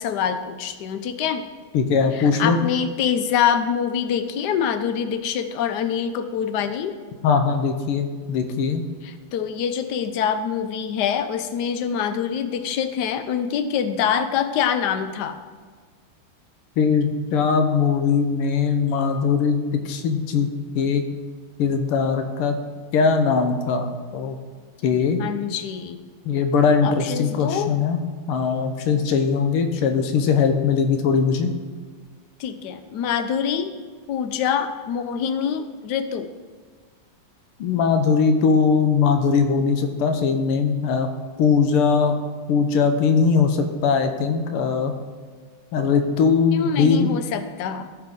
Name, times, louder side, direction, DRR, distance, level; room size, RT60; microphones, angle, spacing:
voice 1, 0.0-1.4 2.1-6.9 9.0-15.4 25.2-26.1 26.8-27.7 32.4-33.7 34.1-36.3 46.5-47.9, left 8 dB, 75° left, 10 dB, 0.9 m, -25 dB
voice 2, 1.7-2.6 7.2-8.8 16.8-20.5 20.7-21.0 21.6-22.6 22.9-24.4 24.8-25.2 26.2-28.0 28.3-31.5 37.6-41.1 41.4-42.2 42.5-44.9 45.7-47.1, left 5 dB, 90° left, 7 dB, 1.7 m, -20 dB
14.5 x 5.9 x 3.7 m, 1.5 s
omnidirectional pair, 2.4 m